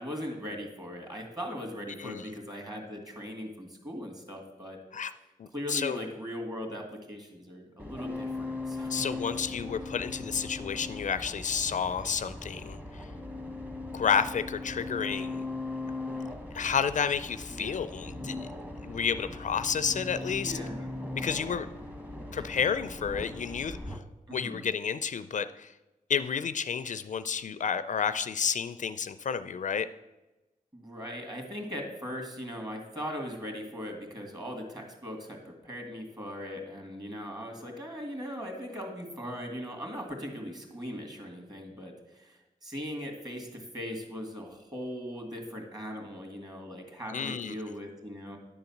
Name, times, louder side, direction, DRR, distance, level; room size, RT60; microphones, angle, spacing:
voice 1, 0.0-4.8 5.5-8.9 17.5-17.8 20.2-20.9 22.4-22.6 24.3-24.6 30.7-48.4, equal, 25° right, 2 dB, 2.2 m, -39 dB
voice 2, 2.0-2.3 4.9-5.1 5.4-6.0 8.9-13.1 13.9-15.4 16.5-18.5 18.8-20.6 21.1-21.7 22.3-24.0 24.3-25.7 26.1-29.9 47.1-47.6, left 7 dB, 60° left, 12 dB, 0.4 m, -31 dB
sound 1, 7.8-24.0, left 2 dB, 10° right, 1.1 m, -39 dB
10.0 x 3.9 x 7.1 m, 1.0 s
cardioid pair, 75°, 14 cm